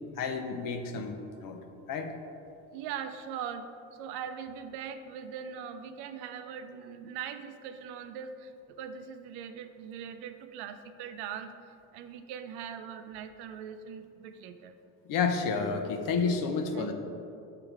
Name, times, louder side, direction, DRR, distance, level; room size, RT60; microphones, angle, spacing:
voice 1, 0.2-1.6 1.9-2.1 15.1-16.9, left 5 dB, 55° left, 6 dB, 0.8 m, -30 dB
voice 2, 2.7-14.8 16.7-16.9, right 7 dB, 70° right, 9 dB, 0.6 m, -41 dB
6.8 x 3.8 x 4.6 m, 2.6 s
supercardioid pair, 100°, 40 cm